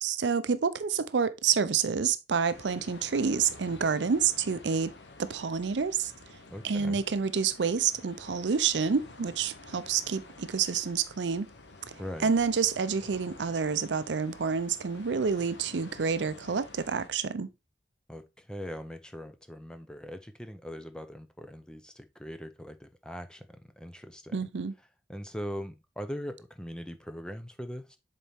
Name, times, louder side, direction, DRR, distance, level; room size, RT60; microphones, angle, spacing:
voice 1, 0.0-4.9 5.2-6.1 6.6-11.5 11.9-17.5 24.3-24.7, right 6 dB, 85° right, 0.5 m, -28 dB
sound 1, 2.5-17.1, left 2 dB, 85° left, 1.2 m, -50 dB
voice 2, 6.5-7.0 12.0-12.3 18.1-24.4 25.1-28.0, equal, 5° left, 0.6 m, -41 dB
7.2 x 4.2 x 3.5 m
head